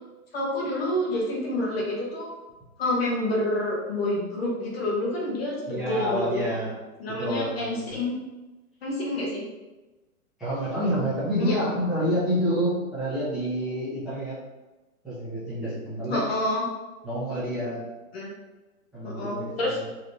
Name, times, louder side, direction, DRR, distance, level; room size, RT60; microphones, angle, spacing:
voice 1, 0.3-2.3 2.8-6.4 7.0-8.2 8.8-9.4 11.4-11.5 16.1-16.6 18.1-18.3 19.0-19.8, left 1 dB, 45° left, -3 dB, 0.8 m, -28 dB
voice 2, 5.7-6.7 7.2-8.1 10.4-14.4 15.0-16.2 17.0-17.8 18.9-19.9, equal, ahead, -16 dB, 0.8 m, -28 dB
3.4 x 3.0 x 2.6 m, 1.1 s
hypercardioid pair, 165°, 44 cm